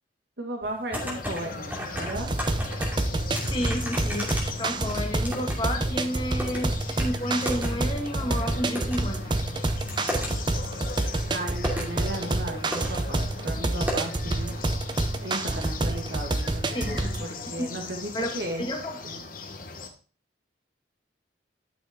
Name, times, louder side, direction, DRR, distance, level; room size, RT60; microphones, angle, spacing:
voice 1, 0.4-2.3 11.3-14.5 15.2-18.7 19.0-19.2, right 1 dB, 65° right, 1 dB, 1.8 m, -35 dB
sound 1, 0.6-1.4 1.7-3.0 3.3-5.6 5.9-6.6 7.0-7.1 7.4-7.7 8.0-8.1 8.8-9.0 9.5-10.3 11.1-11.2 11.6-11.9 12.4-12.5 12.7-12.9 13.2-13.3 13.9-14.0, equal, 10° right, 2.5 m, -33 dB
sound 2, 1.0-19.9, left 3 dB, 50° left, 1.1 m, -38 dB
sound 3, 2.2-17.3, right 2 dB, 25° right, 0.6 m, -28 dB
voice 2, 3.5-4.3 4.6-9.3 16.7-17.2 17.6-17.7 18.1-18.3 18.6-19.0, equal, 25° left, 1 dB, 1.7 m, -31 dB
11.5 x 6.0 x 3.6 m, 0.38 s
head